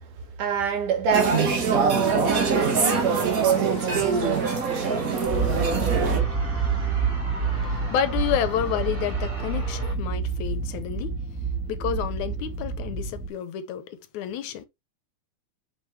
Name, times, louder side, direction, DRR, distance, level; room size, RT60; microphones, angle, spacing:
voice 1, 0.0-6.4, right 7 dB, 90° right, 3.3 m, -28 dB
sound 1, 1.1-6.2, right 4 dB, 45° right, 1.1 m, -24 dB
sound 2, 2.5-9.9, right 1 dB, 20° right, 1.9 m, -39 dB
sound 3, 5.2-13.3, right 5 dB, 5° right, 1.2 m, -28 dB
voice 2, 7.5-11.2 11.7-14.7, left 9 dB, 75° left, 2.2 m, -30 dB
6.2 x 6.0 x 3.2 m
omnidirectional pair, 3.5 m